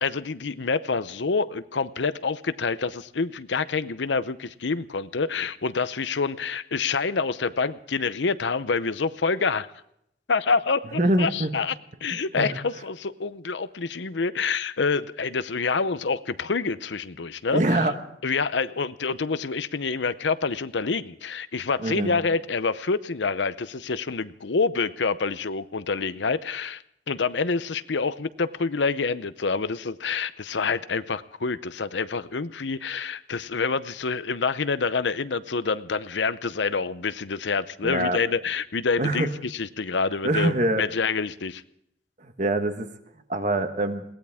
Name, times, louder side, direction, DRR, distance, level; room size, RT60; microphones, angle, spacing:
voice 1, 0.0-9.7 10.3-11.7 12.0-17.8 18.2-41.6, left 4 dB, 80° left, 14 dB, 0.7 m, -27 dB
voice 2, 10.9-11.6 12.3-12.6 17.5-17.9 21.8-22.2 37.8-38.2 39.0-39.3 40.2-40.8 42.2-42.9 43.3-44.0, right 1 dB, 45° right, 7 dB, 1.4 m, -24 dB
21.5 x 18.0 x 3.6 m, 0.75 s
head